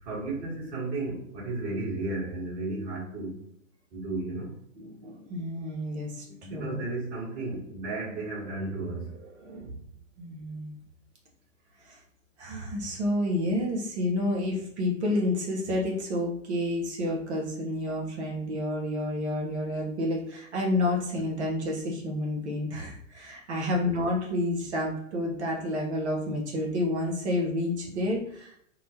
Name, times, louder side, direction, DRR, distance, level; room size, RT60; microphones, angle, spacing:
voice 1, 0.0-3.4 3.9-4.6 6.2-9.8, right 2 dB, 35° right, -8 dB, 1.3 m, -34 dB
voice 2, 4.8-6.2 6.5-6.8 10.2-10.8 11.8-12.0 12.4-28.5, left 1 dB, 55° right, -1 dB, 0.9 m, -29 dB
2.7 x 2.1 x 2.7 m, 0.68 s
figure-of-eight pair, 110°, 40 cm